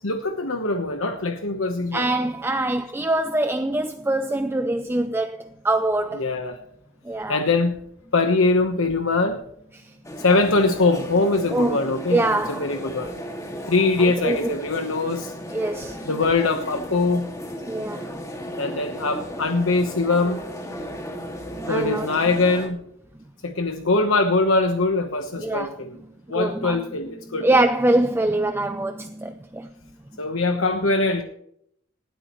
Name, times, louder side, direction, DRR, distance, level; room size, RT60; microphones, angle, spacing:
voice 1, 0.0-2.1 6.2-6.6 7.3-7.8 8.1-9.4 10.2-13.1 13.7-15.3 16.0-17.3 18.6-20.4 21.7-22.8 23.4-26.0 26.3-27.5 30.2-31.2, left 3 dB, 70° left, 1.1 m, -22 dB
voice 2, 1.9-5.4 5.6-6.2 7.1-7.4 11.5-11.8 12.1-12.7 14.0-14.5 15.5-16.0 17.7-18.1 21.6-22.1 25.4-25.8 26.3-26.8 27.4-29.7, right 1 dB, 10° right, 0.5 m, -23 dB
sound 1, 10.0-22.7, equal, 15° left, 2.1 m, -35 dB
18.5 x 12.5 x 3.1 m
head